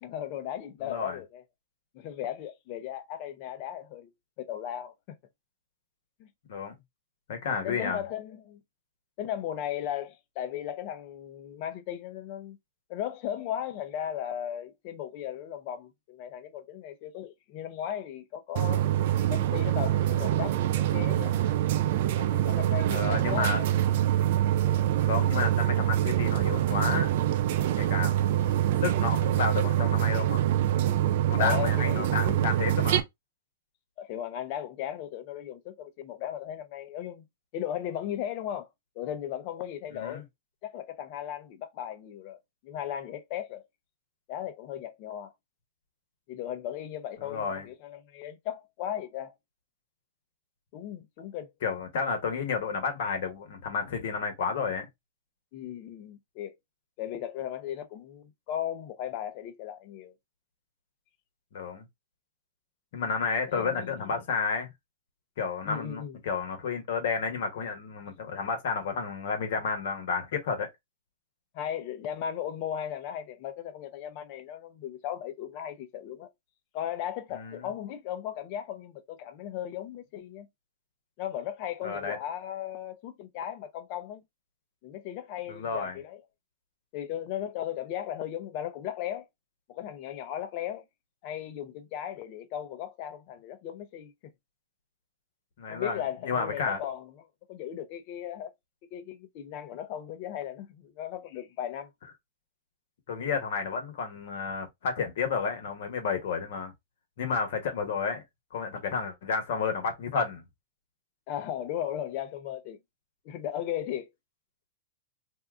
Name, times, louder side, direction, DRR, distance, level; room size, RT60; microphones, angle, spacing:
voice 1, 0.0-1.4 1.9-4.1 4.4-5.2 6.2-6.3 7.6-8.6 9.2-12.6 12.9-18.9 19.3-21.3 22.2-23.9 31.4-32.4 34.0-37.3 37.5-38.7 39.0-40.3 40.6-43.7 44.3-45.3 46.3-49.3 50.7-51.5 55.5-56.5 57.0-60.1 63.5-64.2 65.6-66.2 71.5-76.3 76.7-80.5 81.2-84.2 84.8-86.2 86.9-89.3 89.7-90.8 91.2-94.3 95.7-97.1 97.5-98.5 98.9-101.9 111.3-112.8 113.2-114.1, left 10 dB, 50° left, 0.7 m, -36 dB
voice 2, 0.8-1.2 6.5-6.7 7.3-8.0 22.9-23.6 25.0-27.1 27.7-30.4 31.2-33.0 39.9-40.2 47.2-47.7 51.6-54.9 61.5-61.9 62.9-64.7 65.4-70.7 77.3-77.7 81.8-82.2 85.5-86.0 95.6-96.8 103.1-106.7 107.2-108.2 108.5-110.4, left 5 dB, 70° left, 1.2 m, -31 dB
sound 1, 18.6-33.0, right 12 dB, 65° right, 0.5 m, -25 dB
2.7 x 2.3 x 3.5 m
hypercardioid pair, 125°, 0 cm